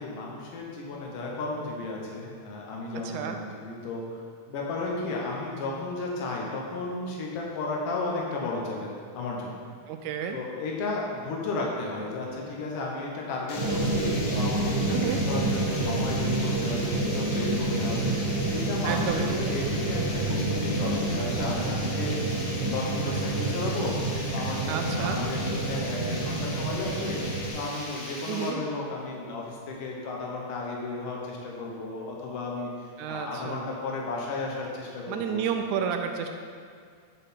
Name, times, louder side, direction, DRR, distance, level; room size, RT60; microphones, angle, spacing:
voice 1, 0.0-4.2 4.5-9.6 10.3-15.0 15.3-22.2 22.5-24.0 24.3-27.2 27.5-35.4, left 3 dB, 90° left, -2 dB, 2.6 m, -34 dB
voice 2, 3.0-3.4 9.9-10.4 14.9-15.2 18.8-19.4 24.7-25.3 28.3-28.6 33.0-33.7 35.1-36.3, right 7 dB, 80° right, 5 dB, 1.9 m, -31 dB
Water, 13.5-28.5, left 1 dB, 65° left, 0.9 m, -39 dB
sound 1, 13.5-27.5, right 2 dB, 50° right, 2.5 m, -28 dB
9.0 x 6.5 x 4.3 m, 2.1 s
omnidirectional pair, 3.6 m